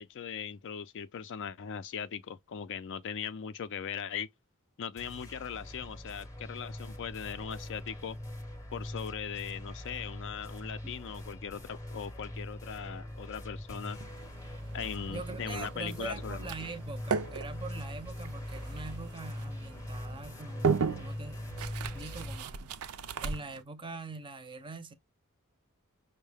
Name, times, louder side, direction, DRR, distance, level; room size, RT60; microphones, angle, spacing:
voice 1, 0.0-4.3 4.8-8.2 8.7-14.0 14.7-16.5, left 7 dB, 60° left, 0.4 m, -39 dB
sound 1, 5.0-22.4, left 1 dB, 15° left, 0.7 m, -42 dB
sound 2, 13.8-23.6, right 5 dB, 85° right, 0.5 m, -37 dB
voice 2, 15.1-21.7 21.9-22.7 23.2-24.9, right 3 dB, 25° right, 0.5 m, -43 dB
5.4 x 2.1 x 3.3 m
head